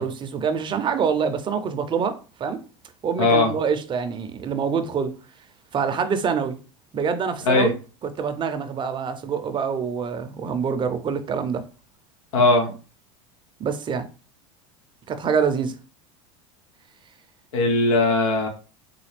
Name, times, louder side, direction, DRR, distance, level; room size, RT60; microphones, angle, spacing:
voice 1, 0.0-2.6 3.0-5.2 5.7-6.6 6.9-7.7 8.2-11.6 13.6-14.1 15.1-15.7, right 6 dB, 30° right, 0.6 m, -25 dB
voice 2, 3.2-3.5 7.4-7.7 12.3-12.7 17.5-18.5, left 2 dB, 85° left, 1.3 m, -19 dB
4.1 x 2.2 x 3.3 m
supercardioid pair, 105°, 16 cm